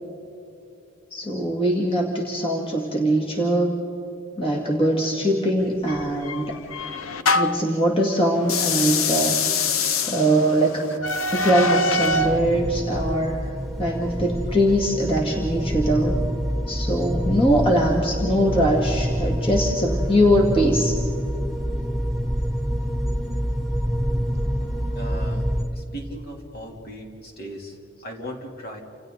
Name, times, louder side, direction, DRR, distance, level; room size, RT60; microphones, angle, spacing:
voice 1, 1.1-3.8 4.4-6.5 7.3-10.9 11.3-13.4 13.8-16.2 16.7-21.0, equal, 25° left, -1 dB, 2.2 m, -22 dB
sound 1, 5.9-7.7 8.4-12.4, left 3 dB, 85° left, 1.0 m, -24 dB
sound 2, 12.1-25.6, equal, ahead, 3.2 m, -26 dB
voice 2, 24.9-25.5 25.7-28.8, equal, 50° left, 1 dB, 3.3 m, -37 dB
30.0 x 27.5 x 4.0 m, 2.8 s
head